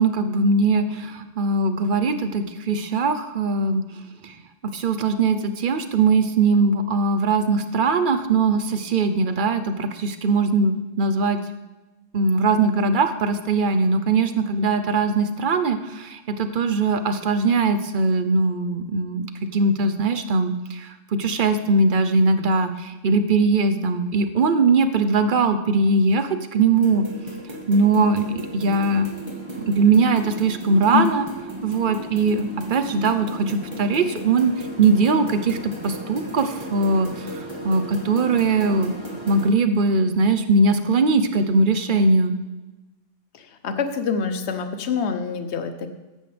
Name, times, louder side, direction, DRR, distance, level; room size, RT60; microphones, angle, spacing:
voice 1, 0.0-3.8 4.7-11.4 12.1-19.3 19.5-20.9 21.1-27.0 27.7-28.3 28.5-29.1 29.7-31.3 31.6-34.5 34.8-35.6 35.8-37.1 37.6-38.9 39.3-42.3, right 3 dB, 50° right, 10 dB, 0.9 m, -20 dB
sound 1, 26.7-39.5, right 1 dB, 25° right, 1.7 m, -35 dB
voice 2, 43.3-45.9, left 6 dB, 65° left, 8 dB, 1.2 m, -25 dB
14.0 x 11.0 x 3.4 m, 1.1 s
omnidirectional pair, 1.2 m